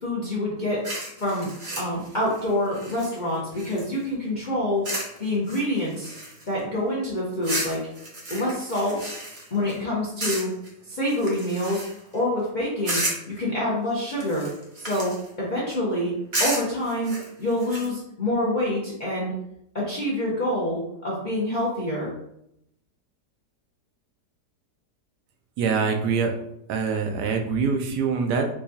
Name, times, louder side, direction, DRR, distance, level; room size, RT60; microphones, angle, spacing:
voice 1, 0.0-0.9 1.2-4.9 5.2-6.1 6.5-7.9 8.3-9.1 9.5-10.5 10.9-11.9 12.1-14.5 14.7-16.1 16.4-19.3 19.7-22.1, left 1 dB, 45° left, -6 dB, 0.6 m, -26 dB
sound 1, 0.8-4.1 4.8-5.2 5.5-6.6 7.4-9.8 10.2-10.7 11.1-12.1 12.8-13.4 14.1-15.3 16.3-17.9, right 1 dB, 40° right, 0.7 m, -32 dB
voice 2, 25.6-26.3 26.7-28.5, right 5 dB, 75° right, 4 dB, 1.1 m, -24 dB
4.6 x 2.3 x 2.7 m, 0.78 s
omnidirectional pair, 1.8 m